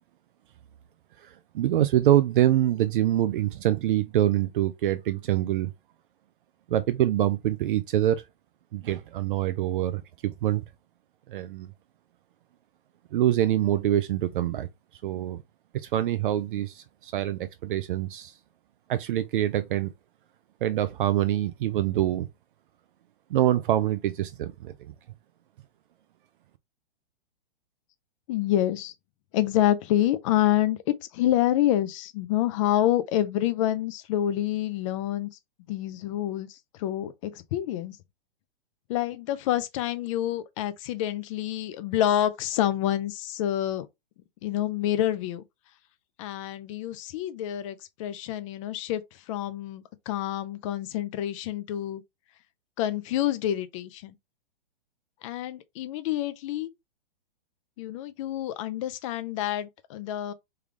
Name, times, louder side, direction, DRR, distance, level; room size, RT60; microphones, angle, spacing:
voice 1, 1.2-5.7 6.7-8.2 8.7-10.6 11.3-11.7 13.1-14.7 15.0-15.4 15.7-18.3 18.9-19.9 20.6-22.3 23.3-24.9, right 12 dB, 60° right, 0.5 m, -25 dB
voice 2, 28.3-28.9 29.3-35.3 35.7-38.0 38.9-43.9 44.4-45.4 46.2-52.0 52.8-54.1 55.2-56.7 57.8-60.3, left 12 dB, 35° left, 0.5 m, -27 dB
3.3 x 2.3 x 3.5 m
hypercardioid pair, 140°, 29 cm